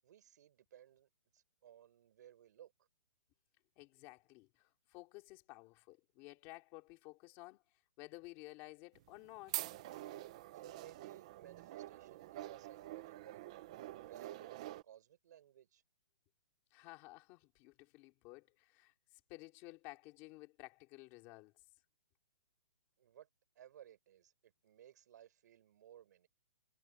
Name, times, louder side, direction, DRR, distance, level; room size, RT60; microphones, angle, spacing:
voice 1, 0.0-2.9 10.5-15.8 23.0-23.3 23.6-26.3, right 11 dB, 35° right, 5.8 m, -60 dB
voice 2, 3.8-7.6 8.0-9.7 16.7-21.5, left 22 dB, 15° left, 2.7 m, -54 dB
sound 1, 8.9-14.8, right 15 dB, 15° right, 0.4 m, -46 dB
hypercardioid pair, 180°, 15 cm